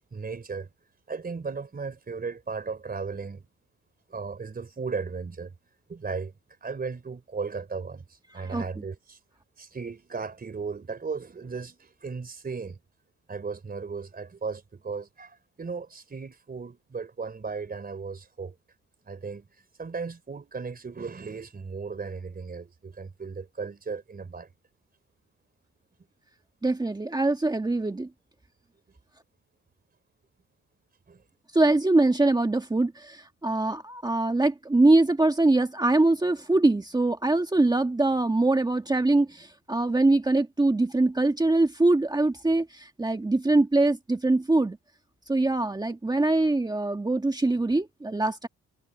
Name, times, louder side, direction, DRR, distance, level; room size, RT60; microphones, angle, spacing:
voice 1, 0.1-0.7 1.1-3.5 4.1-5.5 5.9-6.3 6.6-9.2 9.6-12.8 13.3-18.5 19.1-19.5 19.8-24.5 31.1-31.2, right 5 dB, 30° right, 3.8 m, -36 dB
voice 2, 8.3-8.8 26.6-28.1 31.5-44.8 45.3-48.5, right 2 dB, 15° right, 1.4 m, -23 dB
cardioid pair, 90°, 30 cm